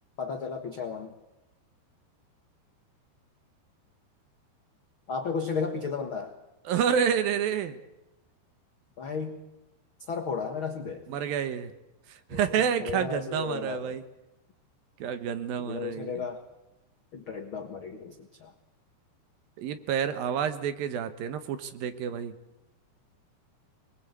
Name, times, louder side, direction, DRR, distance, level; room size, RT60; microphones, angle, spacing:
voice 1, 0.2-1.1 5.1-6.4 9.0-9.4 10.1-11.0 12.3-12.4 12.8-14.0 15.6-16.4 17.1-18.5, left 5 dB, 75° left, 5 dB, 1.1 m, -34 dB
voice 2, 6.7-7.8 11.1-11.7 12.3-14.0 15.0-16.1 19.6-22.3, right 8 dB, 70° right, 11 dB, 2.7 m, -29 dB
24.0 x 22.0 x 8.2 m, 0.96 s
omnidirectional pair, 4.9 m